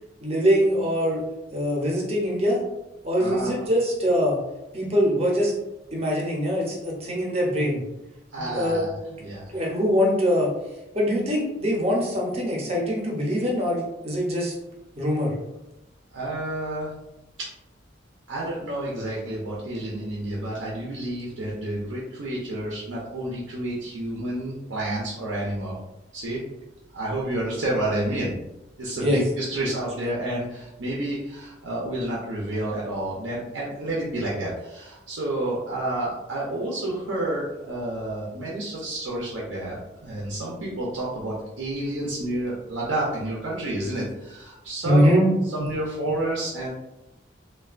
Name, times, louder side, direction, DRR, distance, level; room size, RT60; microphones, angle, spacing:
voice 1, 0.2-1.2 1.5-2.6 3.0-4.4 4.7-5.5 5.9-7.8 8.4-9.2 9.5-10.5 10.9-14.5 15.0-15.3 29.0-29.2 44.8-45.6, equal, 35° right, -3 dB, 0.7 m, -23 dB
voice 2, 3.2-3.6 8.3-8.9 9.2-9.5 16.1-16.9 18.3-25.8 26.1-26.4 26.9-28.3 28.8-29.1 29.4-39.8 40.0-45.2 45.5-46.7, right 1 dB, 85° right, -5 dB, 0.6 m, -30 dB
3.2 x 2.3 x 2.4 m, 0.95 s
head